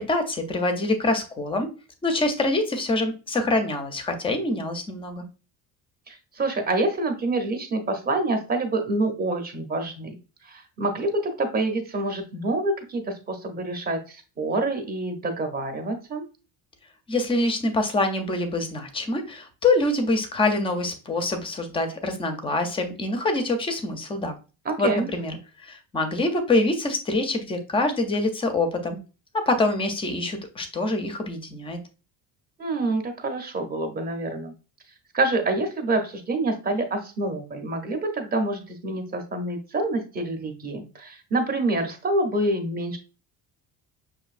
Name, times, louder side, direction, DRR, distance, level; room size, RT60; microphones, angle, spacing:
voice 1, 0.0-1.7 2.0-5.2 17.1-24.4 24.8-29.0 29.3-31.8, left 2 dB, 15° left, 7 dB, 0.4 m, -25 dB
voice 2, 6.1-10.1 10.4-16.2 24.7-25.1 32.6-34.5 35.1-43.0, right 2 dB, 25° right, 5 dB, 0.6 m, -27 dB
6.0 x 2.6 x 2.4 m, 0.33 s
cardioid pair, 175°, 38 cm